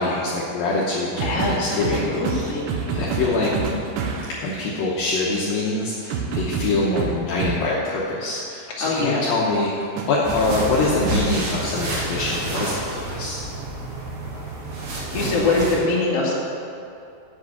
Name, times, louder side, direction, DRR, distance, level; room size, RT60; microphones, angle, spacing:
voice 1, 0.0-3.5 4.3-13.4, left 2 dB, 70° left, -5 dB, 2.5 m, -24 dB
voice 2, 1.2-2.7 8.8-9.2 15.1-16.3, left 3 dB, 40° left, -5 dB, 2.7 m, -23 dB
sound 1, 1.2-4.4 6.1-7.6 10.0-11.0 13.0-13.2, right 5 dB, 90° right, 3.3 m, -27 dB
sound 2, 10.2-15.7, right 2 dB, 65° right, 3.8 m, -29 dB
8.0 x 7.8 x 8.5 m, 2.6 s
omnidirectional pair, 4.9 m